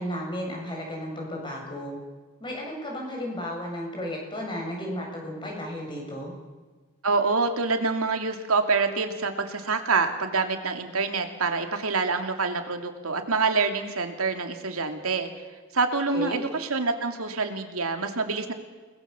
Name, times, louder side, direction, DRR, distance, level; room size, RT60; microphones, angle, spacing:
voice 1, 0.0-2.0 2.4-6.3 16.1-16.4, equal, 20° left, -1 dB, 7.4 m, -33 dB
voice 2, 7.0-15.3 15.7-18.5, right 4 dB, 80° right, 6 dB, 2.7 m, -26 dB
30.0 x 20.5 x 7.1 m, 1.3 s
head